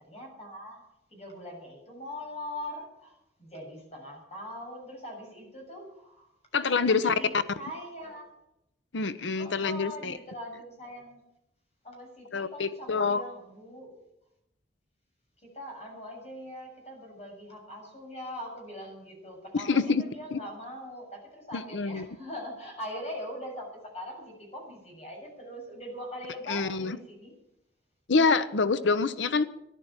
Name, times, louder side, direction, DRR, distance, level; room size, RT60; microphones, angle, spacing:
voice 1, 0.1-8.3 9.3-11.2 11.8-14.1 15.4-27.4, left 1 dB, 35° left, 0 dB, 7.0 m, -42 dB
voice 2, 6.5-7.1 8.9-10.2 12.3-13.2 19.7-20.0 20.3-20.4 21.5-22.1 26.5-27.0 28.1-29.5, left 4 dB, 80° left, 13 dB, 0.8 m, -26 dB
14.0 x 11.0 x 8.9 m, 0.83 s
head